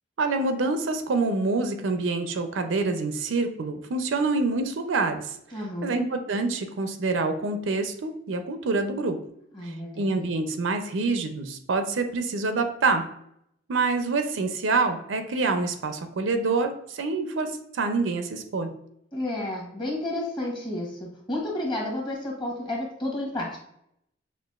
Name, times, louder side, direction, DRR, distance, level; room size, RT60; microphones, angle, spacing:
voice 1, 0.2-5.4 5.8-9.2 9.6-13.0 13.7-18.7, right 3 dB, 85° right, 7 dB, 0.5 m, -26 dB
voice 2, 5.5-6.0 9.5-10.4 19.1-23.6, left 1 dB, 25° left, -2 dB, 1.0 m, -31 dB
5.8 x 2.4 x 2.3 m, 0.74 s
head